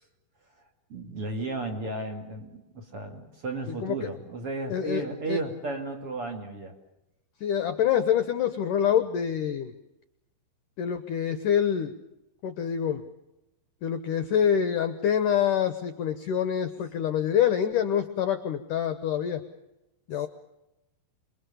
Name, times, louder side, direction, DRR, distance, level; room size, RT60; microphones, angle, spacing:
voice 1, 0.9-6.7, right 2 dB, 40° right, 3 dB, 2.8 m, -34 dB
voice 2, 4.7-5.4 7.4-9.7 10.8-11.9 12.4-13.0 13.8-19.4 20.1-20.3, left 9 dB, 70° left, 10 dB, 2.0 m, -26 dB
27.5 x 22.0 x 7.0 m, 0.92 s
omnidirectional pair, 5.1 m